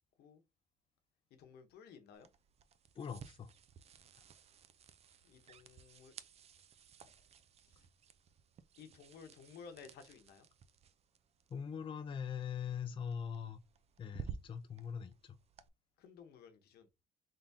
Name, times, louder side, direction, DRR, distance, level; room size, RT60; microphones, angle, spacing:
voice 1, 1.4-2.3 5.2-6.1 7.8-7.9 8.8-10.5 16.0-16.9, left 6 dB, 70° left, 1.0 m, -55 dB
sound 1, 2.1-15.7, right 7 dB, 40° right, 0.4 m, -55 dB
voice 2, 3.0-3.5 11.5-13.6 14.0-15.4, left 7 dB, 30° left, 0.5 m, -42 dB
3.8 x 3.5 x 2.7 m
cardioid pair, 110°, 17 cm